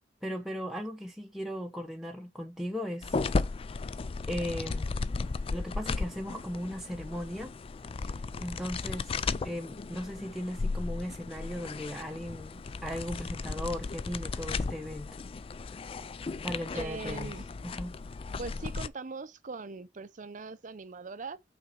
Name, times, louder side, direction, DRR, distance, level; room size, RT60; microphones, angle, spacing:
voice 1, 0.2-3.2 4.3-4.9 5.5-7.5 8.4-9.1 9.4-15.1 16.4-17.4 17.6-17.9, equal, ahead, 0.8 m, -37 dB
sound 1, 3.0-18.9, left 4 dB, 30° left, 0.3 m, -35 dB
voice 2, 16.7-17.5 18.4-21.4, right 4 dB, 45° right, 0.6 m, -41 dB
5.8 x 4.1 x 6.3 m
head